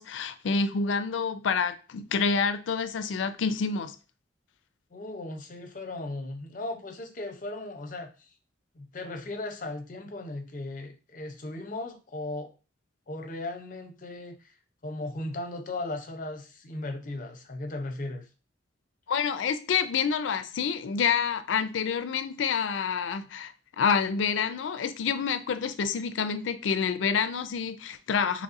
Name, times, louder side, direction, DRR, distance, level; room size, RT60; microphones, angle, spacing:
voice 1, 0.0-4.0 19.1-28.4, left 6 dB, 85° left, 0.4 m, -28 dB
voice 2, 4.9-8.3 8.7-12.5 13.1-14.5 14.8-18.3, left 2 dB, 45° left, 0.6 m, -37 dB
4.1 x 3.0 x 2.5 m
head